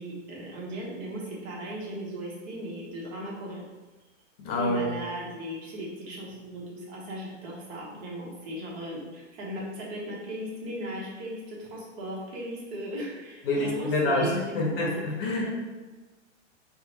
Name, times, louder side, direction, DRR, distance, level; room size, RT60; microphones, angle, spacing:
voice 1, 0.0-3.6 4.5-14.7 15.4-15.6, right 1 dB, 40° right, -4 dB, 1.1 m, -37 dB
voice 2, 4.4-4.9 13.4-15.6, left 2 dB, 50° left, -1 dB, 0.9 m, -27 dB
4.9 x 2.1 x 2.8 m, 1.2 s
hypercardioid pair, 140°, 37 cm